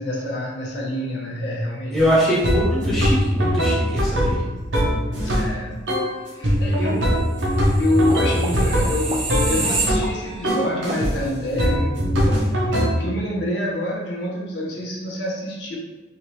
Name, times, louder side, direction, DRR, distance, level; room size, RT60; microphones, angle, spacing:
voice 1, 0.0-2.0 5.2-5.9 6.3-7.2 7.8-12.5 12.7-15.8, left 1 dB, 65° left, -4 dB, 0.6 m, -27 dB
voice 2, 1.9-4.4, equal, ahead, -9 dB, 1.1 m, -22 dB
sound 1, 2.0-2.1 2.4-5.5 5.9-6.1 6.4-10.1 10.4-11.1 11.6-12.9, equal, 80° right, 0.8 m, -21 dB
sound 2, 7.6-10.5 10.9-11.0, right 3 dB, 25° right, 0.3 m, -28 dB
2.8 x 2.7 x 3.1 m, 1.2 s
head